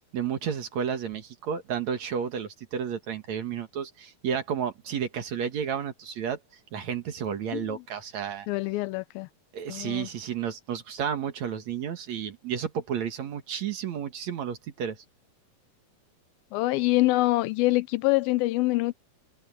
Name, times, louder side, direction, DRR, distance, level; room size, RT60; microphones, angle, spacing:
voice 1, 0.1-6.4 6.7-8.5 9.5-15.0, right 8 dB, 55° right, 2.6 m, -32 dB
voice 2, 7.5-7.8 8.5-9.3 9.7-10.1 16.5-19.0, left 19 dB, 90° left, 2.6 m, -25 dB
omnidirectional pair, 4.1 m